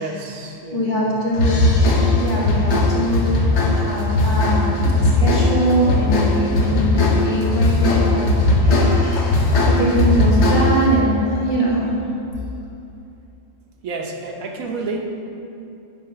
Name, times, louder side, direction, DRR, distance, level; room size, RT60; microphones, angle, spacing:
voice 1, 0.0-1.0 13.8-15.0, right 3 dB, 90° right, 2 dB, 1.3 m, -30 dB
voice 2, 0.7-1.8 2.1-3.4 3.7-9.3 9.7-11.9, right 1 dB, 25° left, -8 dB, 2.1 m, -22 dB
sound 1, 1.3-10.9, left 2 dB, 60° left, 1.1 m, -18 dB
10.5 x 4.2 x 5.7 m, 2.7 s
omnidirectional pair, 1.4 m